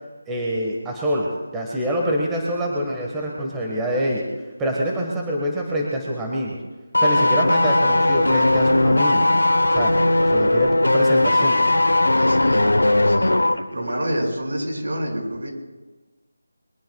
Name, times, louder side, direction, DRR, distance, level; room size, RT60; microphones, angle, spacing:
voice 1, 0.3-4.2 4.6-6.6 7.0-9.2 9.7-10.0 10.2-11.6, equal, 10° right, -2 dB, 1.4 m, -25 dB
sound 1, 6.9-13.6 13.9-14.0, left 1 dB, 90° left, 1.0 m, -18 dB
voice 2, 12.1-13.3 13.7-15.5, equal, 65° right, 0 dB, 5.7 m, -28 dB
22.5 x 22.0 x 2.3 m, 1.2 s
figure-of-eight pair, 165°, 0 cm